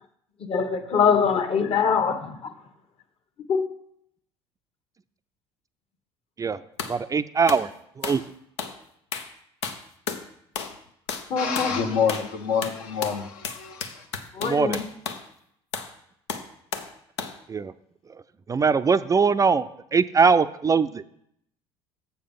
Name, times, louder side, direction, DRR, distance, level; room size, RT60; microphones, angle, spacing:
voice 1, 0.4-2.5 3.5-3.7 11.3-11.8 14.3-14.8, left 6 dB, 45° left, 1.1 m, -23 dB
sound 1, 6.8-7.0 7.5-7.7 8.0-8.3 8.6-8.8 9.1-9.3 9.6-10.3 10.6-10.8 11.1-11.3 11.6-11.7 12.1-12.3 12.6-15.3 15.7-15.9 16.3-16.9 17.2-17.4, left 5 dB, 90° left, 0.7 m, -33 dB
voice 2, 6.9-7.7 8.0-8.2 14.4-14.8 17.5-17.7 18.5-19.6 19.9-21.0, right 5 dB, 25° right, 0.4 m, -21 dB
voice 3, 11.4-14.1, left 6 dB, 70° left, 1.1 m, -27 dB
7.2 x 6.7 x 5.3 m
hypercardioid pair, 65°, 14 cm